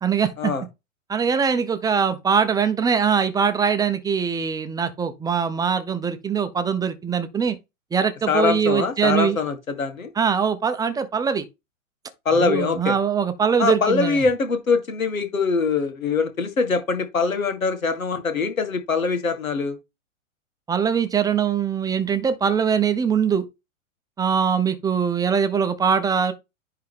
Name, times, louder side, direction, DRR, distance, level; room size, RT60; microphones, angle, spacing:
voice 1, 0.0-0.5 1.1-7.6 7.9-9.4 10.2-11.4 12.3-14.2 20.7-23.5 24.2-26.3, right 6 dB, 10° right, 0.8 m, -22 dB
voice 2, 8.3-10.1 12.3-13.0 13.6-19.8, left 4 dB, 80° left, 2.0 m, -23 dB
10.5 x 3.8 x 3.5 m
figure-of-eight pair, 105°, 41 cm